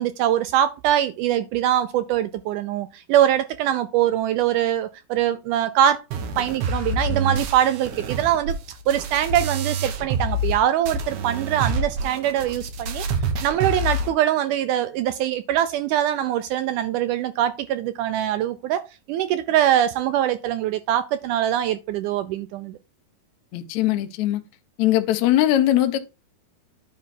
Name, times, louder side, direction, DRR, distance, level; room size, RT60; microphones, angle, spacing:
voice 1, 0.0-6.0 6.4-13.1 13.4-18.8 19.1-22.8, right 11 dB, 85° right, 1.8 m, -23 dB
sound 1, 6.1-10.6 10.9-14.1, right 2 dB, 65° right, 2.3 m, -27 dB
voice 2, 23.5-24.4 24.8-26.0, left 13 dB, 75° left, 1.7 m, -20 dB
10.0 x 3.4 x 5.7 m
omnidirectional pair, 4.2 m